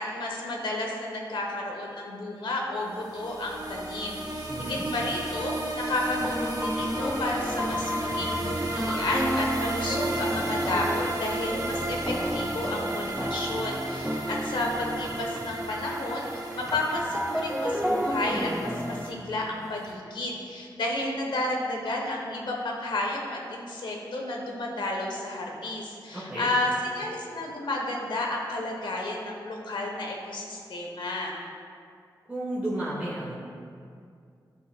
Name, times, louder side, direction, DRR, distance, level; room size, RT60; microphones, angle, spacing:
voice 1, 0.0-31.3, left 2 dB, 80° left, 0 dB, 1.2 m, -32 dB
sound 1, 2.9-19.1, right 2 dB, 45° right, 1.4 m, -33 dB
voice 2, 4.5-4.8 26.1-26.5 32.3-33.4, right 1 dB, 20° right, -10 dB, 1.8 m, -32 dB
sound 2, 5.3-5.4 6.2-15.7 16.0-19.9, equal, ahead, 0.4 m, -32 dB
12.5 x 5.4 x 2.3 m, 2.3 s
wide cardioid pair, 115°, 8 cm